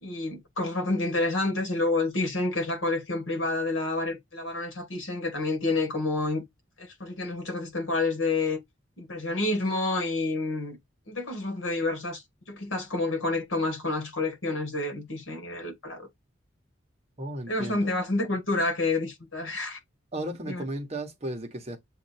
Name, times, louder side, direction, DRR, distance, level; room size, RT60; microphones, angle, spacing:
voice 1, 0.0-6.4 6.8-8.6 9.0-10.8 11.1-12.2 12.5-16.1 17.5-19.8 20.5-20.6, left 2 dB, 70° left, 1.7 m, -29 dB
voice 2, 17.2-17.8 20.1-21.8, right 1 dB, 30° right, 1.1 m, -34 dB
7.5 x 2.6 x 2.7 m
head